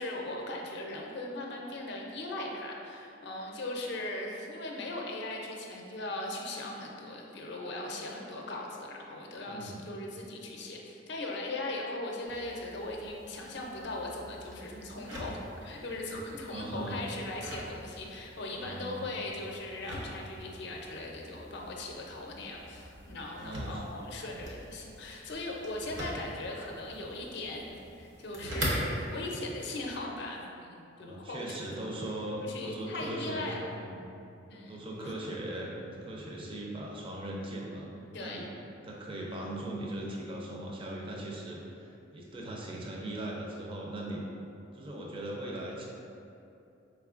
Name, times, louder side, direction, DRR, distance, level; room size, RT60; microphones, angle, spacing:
voice 1, 0.0-31.6 32.4-33.8 34.5-35.3 38.1-38.4, left 2 dB, 65° left, 0 dB, 0.5 m, -39 dB
voice 2, 9.5-9.8 16.4-17.0 18.5-19.0 23.4-23.8 31.0-34.0 34.7-35.7 36.0-37.9 38.2-38.5 38.8-44.2 44.7-45.9, right 1 dB, 30° right, -2 dB, 0.4 m, -39 dB
sound 1, 12.2-29.3, equal, 75° right, 0.8 m, -42 dB
4.2 x 3.3 x 2.4 m, 2.7 s
head